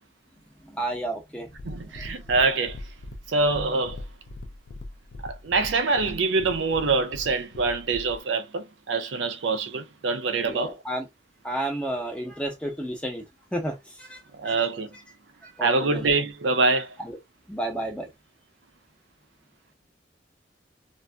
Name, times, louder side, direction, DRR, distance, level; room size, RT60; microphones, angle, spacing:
voice 1, 0.6-1.5 10.4-11.1 11.4-13.2 13.5-14.2 14.4-14.7 15.4-16.0 17.0-17.2 17.5-18.1, right 1 dB, 5° left, 0.7 m, -31 dB
sound 1, 1.5-8.2, left 1 dB, 65° left, 0.4 m, -41 dB
voice 2, 1.6-2.9 3.3-4.0 5.2-10.8 14.3-14.9 15.6-17.0, right 3 dB, 85° right, 0.5 m, -25 dB
2.6 x 2.5 x 2.2 m
head